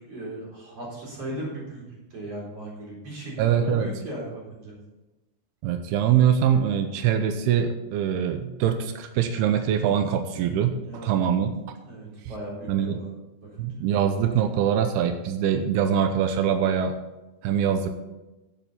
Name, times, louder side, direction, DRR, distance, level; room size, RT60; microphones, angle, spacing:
voice 1, 0.1-4.8 10.7-11.3 11.8-13.1 13.6-13.8, right 1 dB, 40° right, -5 dB, 4.8 m, -37 dB
voice 2, 3.4-3.9 5.6-11.5 12.7-13.0 13.6-16.9 17.4-17.9, right 8 dB, 90° right, 7 dB, 2.7 m, -23 dB
11.0 x 9.4 x 4.3 m, 1.1 s
omnidirectional pair, 4.5 m